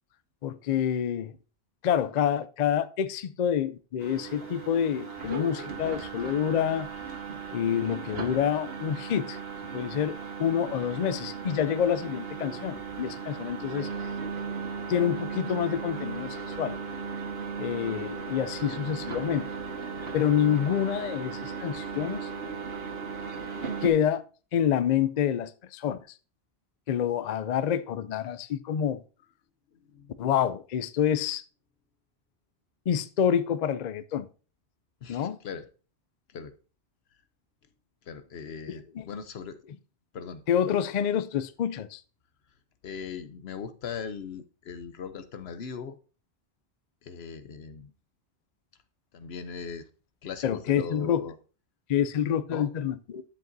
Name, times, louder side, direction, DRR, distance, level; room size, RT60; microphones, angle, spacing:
voice 1, 0.4-1.3 1.8-6.9 7.5-9.4 9.7-14.1 14.9-16.8 17.6-19.5 20.1-22.3 23.8-24.2 24.5-26.0 26.9-29.0 30.2-31.4 32.9-34.3 35.1-35.4 38.7-39.0 40.5-42.0 50.4-51.3 51.9-53.3, left 9 dB, 55° left, 0.5 m, -27 dB
sound 1, 4.0-23.9, right 5 dB, 70° right, 1.7 m, -37 dB
voice 2, 35.0-35.7 36.3-36.5 38.1-39.6 40.1-40.4 42.8-46.0 47.0-47.9 49.1-49.9 50.2-51.3 52.5-52.7, left 6 dB, 75° left, 1.0 m, -39 dB
11.0 x 7.4 x 2.6 m
omnidirectional pair, 1.1 m